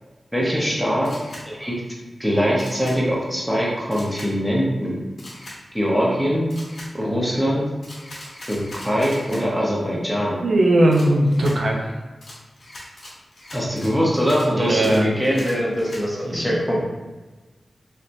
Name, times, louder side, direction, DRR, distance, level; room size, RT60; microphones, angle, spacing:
voice 1, 0.3-1.1 1.5-1.7 2.2-4.9 5.7-6.5 6.9-7.6 8.5-10.4 13.5-16.8, equal, 5° right, -5 dB, 0.8 m, -22 dB
Camera, 1.0-1.4 2.6-3.0 3.9-4.3 5.2-5.6 6.5-6.9 7.8-9.4 10.9-11.6 12.2-16.0, left 1 dB, 80° left, 1.1 m, -40 dB
voice 2, 10.4-11.9 14.5-15.1 16.2-16.6, right 1 dB, 80° right, 0 dB, 0.5 m, -19 dB
3.3 x 2.8 x 2.6 m, 1.2 s
wide cardioid pair, 95°, 0 cm